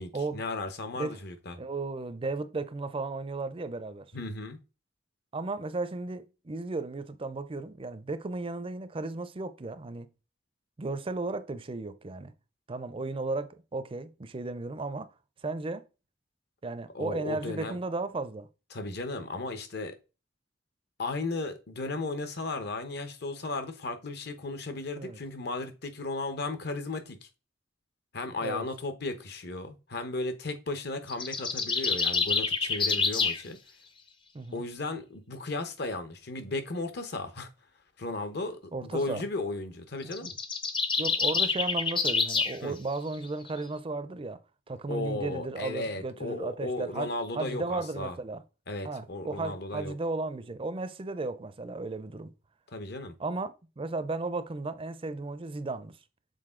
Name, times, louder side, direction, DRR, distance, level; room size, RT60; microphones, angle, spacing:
voice 1, 0.0-1.6 4.1-4.6 16.9-17.8 18.7-19.9 21.0-27.3 28.1-33.6 34.5-37.5 38.0-40.3 42.6-42.8 44.9-48.2 48.7-49.9 52.7-53.1, left 2 dB, 60° left, 1.0 m, -35 dB
voice 2, 1.6-4.1 5.3-10.1 10.8-12.3 12.7-15.1 15.4-15.8 16.6-18.5 25.0-25.2 28.4-28.7 34.3-34.6 38.7-39.2 40.0-40.3 41.0-44.4 44.7-48.4 48.8-52.3 53.2-56.0, right 3 dB, 30° right, 0.5 m, -35 dB
sound 1, 31.1-33.4 40.0-42.6, left 4 dB, 25° left, 0.6 m, -27 dB
6.7 x 3.9 x 3.7 m
head